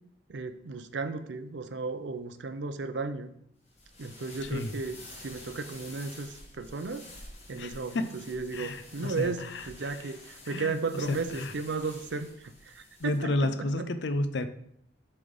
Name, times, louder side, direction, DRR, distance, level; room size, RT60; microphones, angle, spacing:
voice 1, 0.3-3.3 4.0-7.1 7.5-13.8, right 4 dB, 70° right, 10 dB, 0.6 m, -35 dB
sound 1, 3.7-13.2, left 2 dB, 35° left, 1.8 m, -49 dB
voice 2, 7.6-8.2 8.5-9.7 10.5-10.8 11.1-11.5 13.0-14.5, left 1 dB, 70° left, 11 dB, 0.6 m, -31 dB
7.1 x 3.4 x 5.4 m, 0.70 s
head